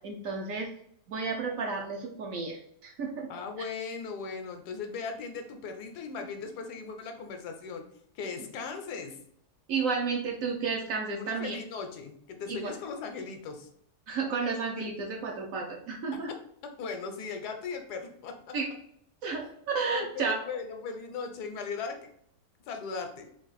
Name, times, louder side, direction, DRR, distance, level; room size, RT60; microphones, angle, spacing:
voice 1, 0.0-0.7 1.1-3.3 9.7-11.6 12.5-12.7 14.1-16.3 18.5-18.7 19.2-20.4, right 4 dB, 65° right, 1 dB, 0.9 m, -32 dB
voice 2, 3.3-7.8 8.1-9.2 11.2-13.7 16.3-16.4 16.6-18.6 19.4-19.5 19.8-22.1 22.7-23.3, left 5 dB, 75° left, 5 dB, 1.1 m, -38 dB
3.6 x 2.4 x 4.0 m, 0.69 s
omnidirectional pair, 1.8 m